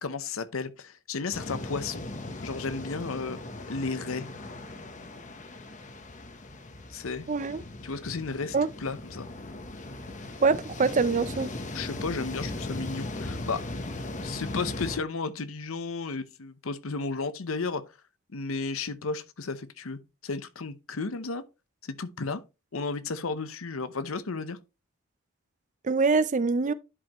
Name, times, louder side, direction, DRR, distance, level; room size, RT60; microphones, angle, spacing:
voice 1, 0.0-2.1 2.4-3.4 3.7-4.3 6.9-7.3 7.8-9.3 11.7-13.6 14.2-17.8 18.3-21.4 21.8-22.4 22.7-24.6, left 4 dB, 80° left, 0.8 m, -33 dB
sound 1, 1.3-15.0, left 2 dB, 35° left, 1.0 m, -38 dB
voice 2, 7.3-7.6 8.5-8.7 10.4-11.5 25.8-26.7, right 4 dB, 35° right, 0.5 m, -24 dB
11.0 x 5.1 x 3.0 m
head